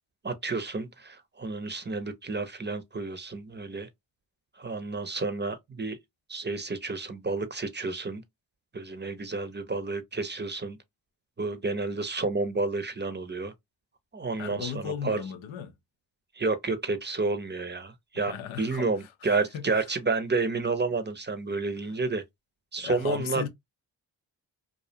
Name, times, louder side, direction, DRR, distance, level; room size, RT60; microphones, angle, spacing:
voice 1, 0.2-3.9 4.6-6.0 6.3-8.2 8.7-10.8 11.4-13.5 14.1-15.2 16.3-22.2 22.7-23.5, right 3 dB, 25° right, 0.6 m, -30 dB
voice 2, 14.4-15.7 18.3-18.9 19.5-19.6 22.8-23.5, left 8 dB, 85° left, 0.6 m, -35 dB
2.4 x 2.1 x 2.7 m
supercardioid pair, 40°, 45 cm